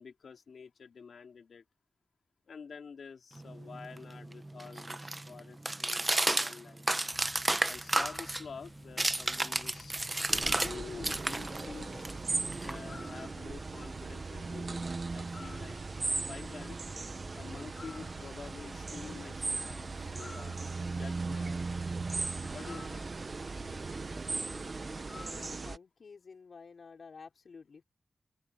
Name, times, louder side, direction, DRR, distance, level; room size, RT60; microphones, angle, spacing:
voice 1, 0.0-1.6 2.5-6.8 7.7-10.0 10.4-12.1 12.6-15.8 16.1-16.8 17.4-20.6 21.0-21.9 22.5-23.1, left 5 dB, 85° left, 3.7 m, -48 dB
sound 1, 3.4-10.7 11.0-13.2, right 2 dB, 20° right, 0.9 m, -33 dB
sound 2, 7.1-25.6, left 4 dB, 50° left, 6.3 m, -54 dB
sound 3, 10.3-25.8, right 3 dB, 45° right, 1.2 m, -38 dB
voice 2, 25.1-27.8, left 5 dB, 70° left, 5.0 m, -51 dB
open air
wide cardioid pair, 95°, 0 cm